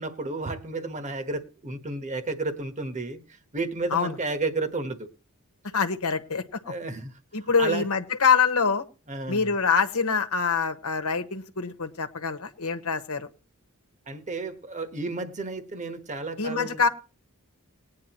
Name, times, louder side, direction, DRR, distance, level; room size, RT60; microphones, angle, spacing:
voice 1, 0.0-3.2 3.5-5.1 6.7-7.1 7.4-7.8 9.1-9.5 14.1-16.8, right 3 dB, 35° right, 1.3 m, -32 dB
voice 2, 5.7-6.7 7.3-8.8 9.3-13.3 16.4-16.9, left 5 dB, 80° left, 1.2 m, -25 dB
19.5 x 9.6 x 3.0 m
head